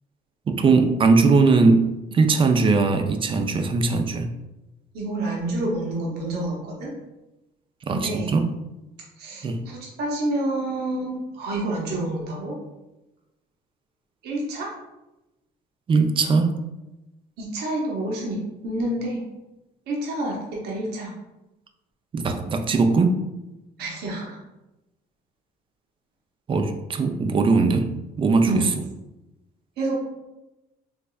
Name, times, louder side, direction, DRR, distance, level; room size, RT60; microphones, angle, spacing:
voice 1, 0.5-4.3 7.9-8.5 9.4-9.6 15.9-16.6 22.1-23.2 26.5-27.9 28.2-28.7, right 4 dB, 30° right, 7 dB, 0.4 m, -20 dB
voice 2, 4.9-6.9 7.9-8.3 9.2-12.6 14.2-14.7 17.4-19.2 19.9-21.1 23.8-24.4 28.5-28.7 29.8-30.0, right 1 dB, 75° right, -2 dB, 0.9 m, -28 dB
3.5 x 3.1 x 2.3 m, 0.97 s
cardioid pair, 110°, 17 cm